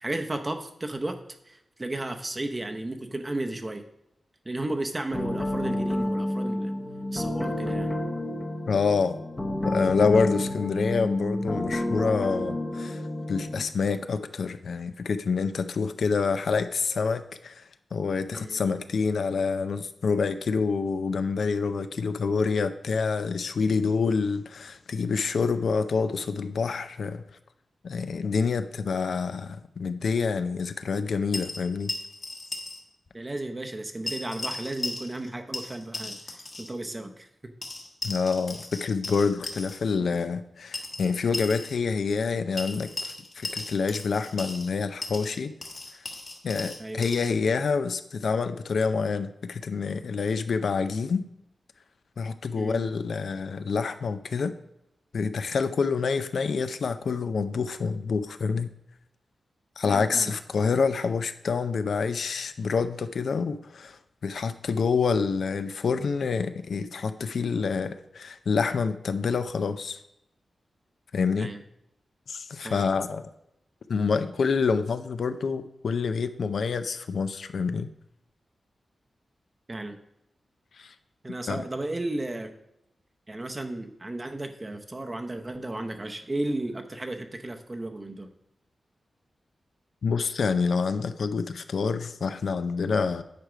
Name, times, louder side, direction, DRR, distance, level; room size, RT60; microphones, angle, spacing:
voice 1, 0.0-1.2 1.5-3.8 4.4-6.7 7.1-7.9 18.3-18.6 33.1-37.3 40.0-40.2 46.8-47.1 52.5-52.9 59.8-60.3 71.4-71.6 72.6-72.8 79.7-80.0 81.2-82.5 83.3-88.3, right 2 dB, 20° right, 6 dB, 0.7 m, -34 dB
sound 1, 5.1-13.6, left 1 dB, 20° left, 0.8 m, -30 dB
voice 2, 8.7-9.1 9.6-13.0 13.3-17.6 17.9-27.2 27.8-31.9 38.0-45.5 46.4-51.3 52.2-54.5 55.1-58.7 59.8-70.0 71.1-71.5 72.3-73.3 73.9-77.9 80.7-80.9 81.5-81.6 90.0-93.2, left 5 dB, 65° left, 10 dB, 0.4 m, -27 dB
sound 2, 31.3-32.8 33.1-33.2 34.1-35.3 35.5-36.7 37.6-39.8 40.7-41.8 42.6-44.7 45.0-47.3, left 2 dB, 40° left, 1.3 m, -36 dB
9.4 x 4.9 x 4.9 m, 0.84 s
wide cardioid pair, 170°, 0 cm